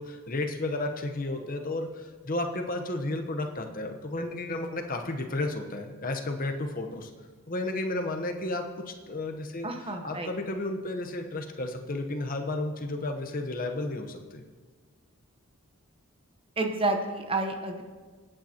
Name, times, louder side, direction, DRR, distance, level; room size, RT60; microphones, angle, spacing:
voice 1, 0.0-7.1 7.5-9.7 10.0-14.4, left 2 dB, 40° left, 4 dB, 1.0 m, -32 dB
voice 2, 9.6-10.3 16.6-17.8, right 2 dB, 25° right, 5 dB, 1.0 m, -30 dB
24.0 x 8.9 x 2.9 m, 1.5 s
head